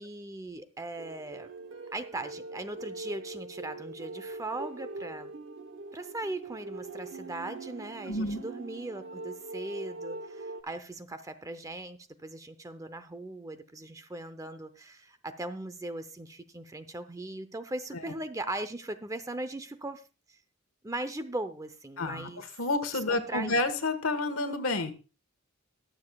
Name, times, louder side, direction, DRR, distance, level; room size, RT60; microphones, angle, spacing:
voice 1, 0.0-1.5 1.9-5.3 5.9-20.0 20.3-20.4 20.8-22.4 22.9-23.6, right 2 dB, 15° right, 11 dB, 0.7 m, -39 dB
Spring Sleet song by James Marlowe, 1.0-10.6, right 3 dB, 60° right, 1.0 m, -42 dB
voice 2, 8.1-8.4 22.0-24.9, left 2 dB, 85° left, 8 dB, 1.4 m, -30 dB
21.5 x 7.2 x 2.3 m, 0.33 s
head